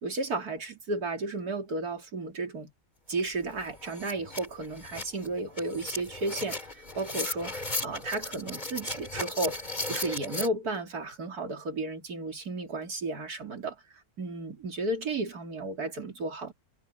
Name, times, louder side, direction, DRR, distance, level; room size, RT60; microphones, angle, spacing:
voice 1, 0.0-2.7 3.1-13.8 14.2-16.5, right 2 dB, 80° right, 3.4 m, -33 dB
sound 1, 3.2-3.3 3.6-10.5, left 2 dB, 30° left, 2.8 m, -36 dB
omnidirectional pair, 1.6 m